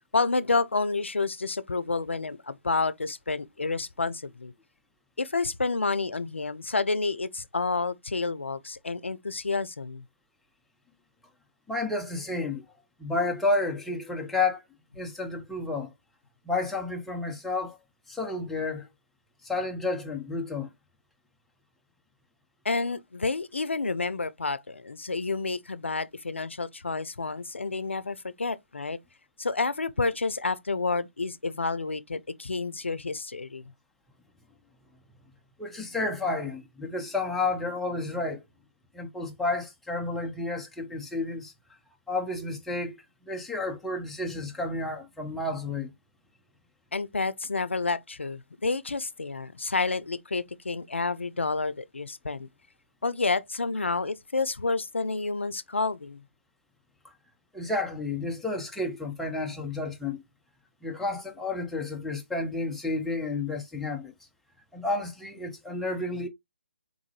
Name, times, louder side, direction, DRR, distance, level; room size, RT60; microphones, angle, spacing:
voice 1, 0.1-4.5 5.2-10.0 22.6-29.0 29.4-33.6 46.9-52.5 53.0-56.2, left 3 dB, 85° left, 0.5 m, -29 dB
voice 2, 11.7-12.6 13.0-14.6 15.0-15.9 16.5-17.8 18.1-18.9 19.4-20.7 35.6-38.4 38.9-41.5 42.1-45.9 57.5-60.2 60.8-64.1 64.7-66.3, left 3 dB, 5° left, 0.6 m, -31 dB
4.1 x 3.7 x 3.0 m
figure-of-eight pair, 150°, 6 cm